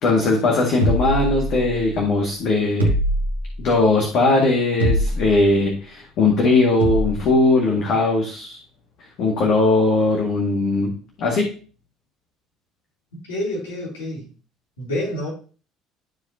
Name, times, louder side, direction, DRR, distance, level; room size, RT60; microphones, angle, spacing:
voice 1, 0.0-2.9 3.6-8.6 9.0-10.9 11.2-11.5, left 3 dB, 55° left, 0 dB, 1.8 m, -19 dB
sound 1, 0.8-1.9 2.8-3.7 4.8-5.5 6.8-7.3, equal, 90° right, 1.5 m, -22 dB
voice 2, 13.3-14.3 14.8-15.3, left 1 dB, 75° left, -5 dB, 3.0 m, -27 dB
12.5 x 4.7 x 2.8 m, 0.38 s
figure-of-eight pair, 60°, 0 cm